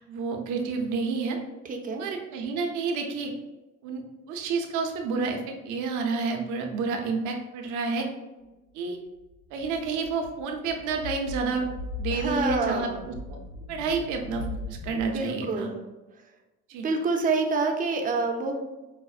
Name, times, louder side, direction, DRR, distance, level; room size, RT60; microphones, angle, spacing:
voice 1, 0.0-1.4 2.0-3.3 3.8-8.1 8.7-9.0 9.5-11.7 12.0-13.4 13.7-15.7 16.7-16.8, right 4 dB, 70° right, 3 dB, 0.7 m, -30 dB
voice 2, 1.6-2.1 12.1-13.1 15.0-15.8 16.8-18.6, right 3 dB, 25° right, 3 dB, 0.5 m, -27 dB
sound 1, 9.3-15.0, left 3 dB, 90° left, 1.2 m, -38 dB
5.0 x 2.0 x 2.4 m, 1.1 s
cardioid pair, 115°, 31 cm